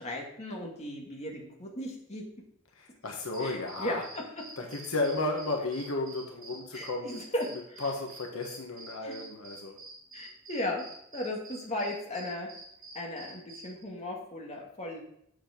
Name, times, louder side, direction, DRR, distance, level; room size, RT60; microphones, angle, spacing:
voice 1, 0.0-2.2 3.4-4.0 6.7-7.8 9.0-9.2 10.1-10.8 11.1-12.5 12.9-15.0, left 1 dB, 30° left, -2 dB, 2.3 m, -36 dB
voice 2, 2.8-4.0 4.6-7.2 7.5-9.8, left 2 dB, 75° left, 2 dB, 1.3 m, -33 dB
sound 1, 3.2-13.8, right 2 dB, 40° right, 2.7 m, -48 dB
7.6 x 7.2 x 5.2 m, 0.74 s
head